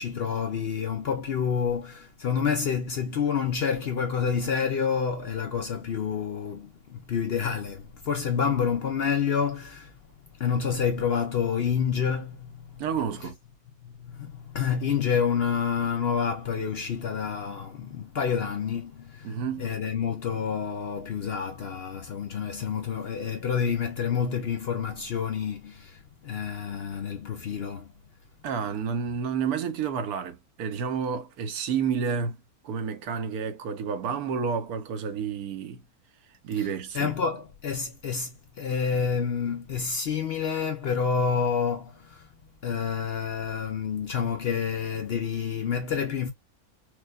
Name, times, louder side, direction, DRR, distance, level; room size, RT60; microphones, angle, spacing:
voice 1, 0.0-9.9 10.4-12.8 13.8-19.3 19.6-27.9 36.9-42.3 42.6-46.3, left 7 dB, 55° left, 0.7 m, -28 dB
voice 2, 12.8-13.3 19.2-19.7 28.4-35.8 36.4-37.1, right 6 dB, 85° right, 1.2 m, -30 dB
4.6 x 2.3 x 2.3 m
omnidirectional pair, 1.6 m